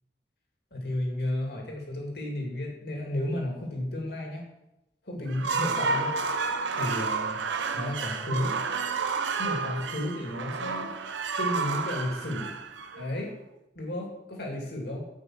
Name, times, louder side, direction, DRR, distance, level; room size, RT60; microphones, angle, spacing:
voice 1, 0.7-4.4 5.0-6.1 6.7-7.4 7.7-8.5 9.4-10.9 11.4-12.5 13.0-13.3 13.7-15.0, left 1 dB, 60° left, 0 dB, 2.5 m, -32 dB
sound 1, 5.3-13.4, right 4 dB, 85° right, 0.6 m, -31 dB
8.9 x 5.5 x 7.4 m, 0.90 s
head